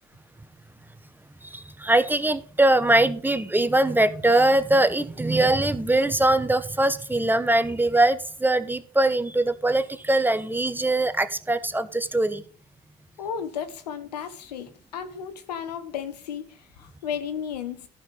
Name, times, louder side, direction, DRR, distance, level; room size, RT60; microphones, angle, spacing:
voice 1, 1.4-12.4, right 2 dB, 10° right, 1.0 m, -22 dB
voice 2, 13.2-17.9, left 8 dB, 90° left, 1.2 m, -34 dB
13.0 x 5.8 x 5.1 m
hypercardioid pair, 70°, 20 cm